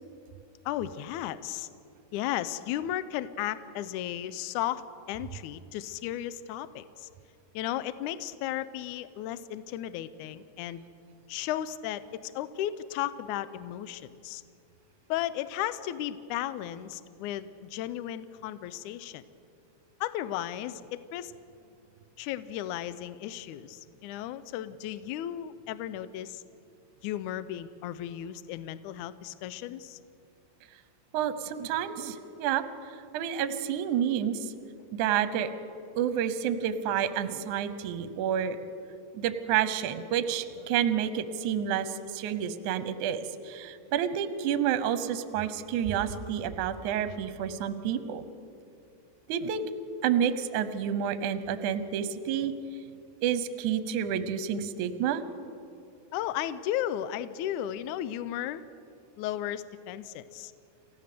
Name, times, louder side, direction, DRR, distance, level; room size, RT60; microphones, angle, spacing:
voice 1, 0.7-1.7 2.1-4.8 5.1-7.1 7.5-10.8 11.3-14.4 15.1-19.2 20.0-21.3 22.2-26.4 27.0-30.0 56.1-58.6 59.2-60.5, left 12 dB, 80° left, 14 dB, 1.8 m, -35 dB
voice 2, 31.1-32.6 33.1-34.5 34.9-35.5 35.9-38.6 39.1-48.2 49.3-49.7 50.0-52.5 53.2-55.2, right 9 dB, 70° right, 12 dB, 2.0 m, -29 dB
28.5 x 15.5 x 6.8 m, 2.6 s
omnidirectional pair, 4.3 m